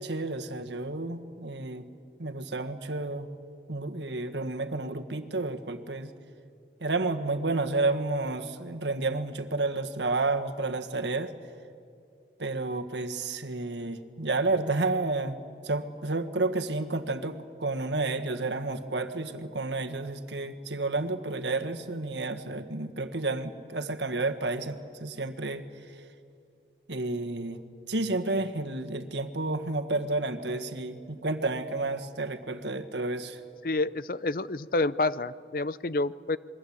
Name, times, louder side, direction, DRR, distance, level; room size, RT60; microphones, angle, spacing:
voice 1, 0.0-1.8 2.2-3.3 3.7-6.1 6.8-11.3 12.4-15.4 15.6-25.6 26.9-27.6 27.9-33.4, right 2 dB, 85° right, 8 dB, 1.6 m, -31 dB
voice 2, 33.6-36.4, left 2 dB, 50° left, 17 dB, 0.6 m, -28 dB
28.0 x 22.0 x 8.7 m, 2.4 s
head